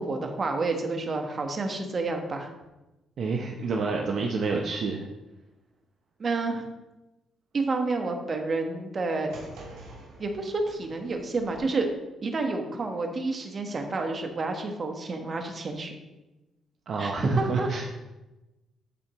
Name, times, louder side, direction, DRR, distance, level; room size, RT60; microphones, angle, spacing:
voice 1, 0.0-2.5 6.2-6.6 7.5-9.3 10.2-11.9 12.2-16.0 17.0-17.7, right 3 dB, 40° right, 4 dB, 1.2 m, -29 dB
voice 2, 3.2-5.0 16.9-18.0, right 4 dB, 60° right, 1 dB, 0.7 m, -29 dB
sound 1, 9.3-11.6, right 2 dB, 80° right, 2.8 m, -47 dB
12.5 x 4.4 x 3.0 m, 1.0 s
cardioid pair, 90°, 0 cm